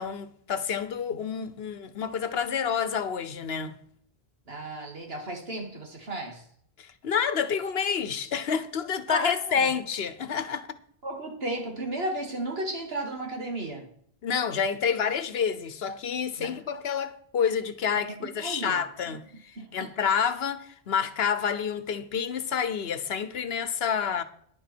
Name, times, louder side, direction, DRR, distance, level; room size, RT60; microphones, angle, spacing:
voice 1, 0.0-3.8 6.8-10.8 14.2-24.2, left 7 dB, 80° left, 1.1 m, -29 dB
voice 2, 4.5-6.4 9.1-9.7 11.0-13.9 16.4-16.6 18.2-18.8 19.6-19.9, right 1 dB, 75° right, 2.4 m, -34 dB
10.5 x 7.4 x 6.1 m
omnidirectional pair, 1.0 m